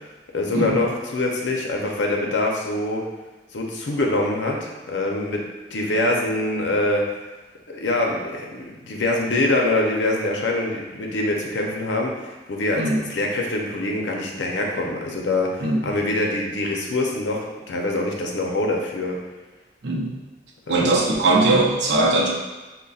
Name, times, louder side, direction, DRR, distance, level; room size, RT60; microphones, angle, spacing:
voice 1, 0.3-3.0 3.5-5.4 5.7-7.0 7.7-12.8 13.1-19.2 20.7-21.0, left 2 dB, 85° left, 0 dB, 0.6 m, -24 dB
voice 2, 19.8-20.1 20.7-22.3, right 2 dB, 75° right, -2 dB, 0.6 m, -20 dB
5.2 x 2.1 x 2.4 m, 1.2 s
head